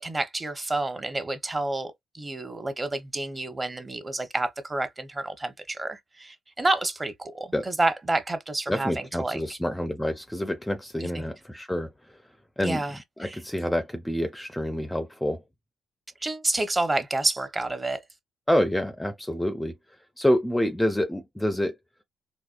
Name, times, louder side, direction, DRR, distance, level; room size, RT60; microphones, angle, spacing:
voice 1, 0.0-9.6 11.0-11.3 12.6-13.4 16.2-18.0, right 2 dB, 20° right, 0.8 m, -29 dB
voice 2, 8.7-11.9 12.6-12.8 13.2-15.4 18.5-19.8 20.2-21.8, left 1 dB, 5° left, 0.5 m, -27 dB
4.1 x 2.2 x 2.4 m
cardioid pair, 90°, 0 cm